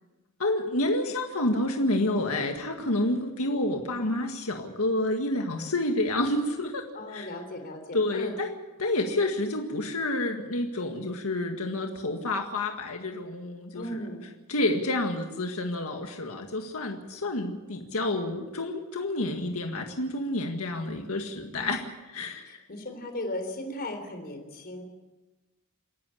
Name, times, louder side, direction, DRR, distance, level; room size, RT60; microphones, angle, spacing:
voice 1, 0.4-7.3 7.9-14.0 14.5-22.6, left 1 dB, 80° left, 3 dB, 1.9 m, -29 dB
voice 2, 6.9-8.4 13.7-14.3 21.6-21.8 22.5-24.8, left 1 dB, 45° left, 5 dB, 3.7 m, -37 dB
28.5 x 11.5 x 8.5 m, 1.1 s
head